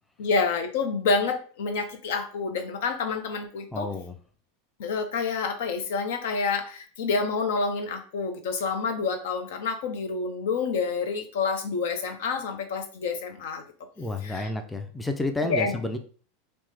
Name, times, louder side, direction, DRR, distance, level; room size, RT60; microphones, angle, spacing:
voice 1, 0.2-3.9 4.8-13.6 14.2-14.5 15.5-15.8, left 4 dB, 70° left, 6 dB, 0.5 m, -28 dB
voice 2, 3.7-4.2 14.0-16.0, left 2 dB, 10° left, 6 dB, 0.4 m, -30 dB
3.1 x 2.0 x 3.2 m, 0.41 s
hypercardioid pair, 95°, 0 cm